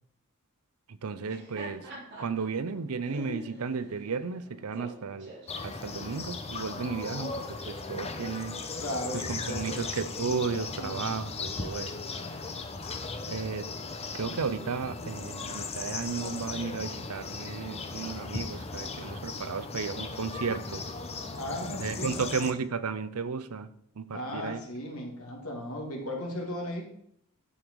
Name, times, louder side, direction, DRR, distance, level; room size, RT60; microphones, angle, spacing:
voice 1, 0.9-1.9 2.2-5.3 5.6-8.6 9.3-11.9 13.3-13.7 14.1-20.8 21.8-23.7 24.0-24.6, right 5 dB, 75° right, 13 dB, 0.6 m, -34 dB
Laughter, 1.1-6.3, right 1 dB, 55° right, 3.9 m, -46 dB
sound 1, 5.5-22.5, left 3 dB, 30° left, 0.8 m, -37 dB
voice 2, 8.8-9.8 10.8-11.2 21.3-22.2 24.1-26.9, left 1 dB, 75° left, 0 dB, 2.4 m, -36 dB
11.0 x 5.3 x 4.6 m, 0.71 s
head